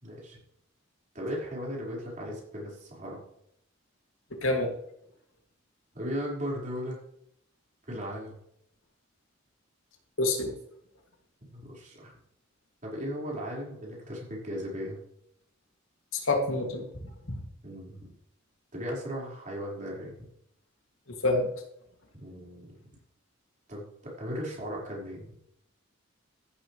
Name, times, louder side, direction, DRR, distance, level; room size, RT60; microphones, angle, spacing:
voice 1, 0.0-0.4 1.1-3.2 5.9-7.0 7.9-8.3 11.5-12.1 12.8-15.0 17.6-18.1 18.7-20.1 22.1-22.7 23.7-25.4, equal, 40° right, -4 dB, 5.4 m, -37 dB
voice 2, 10.2-10.5 16.2-16.8 17.3-17.4 21.2-21.5, left 2 dB, 90° left, 2 dB, 2.8 m, -26 dB
14.0 x 12.5 x 3.5 m, 0.74 s
head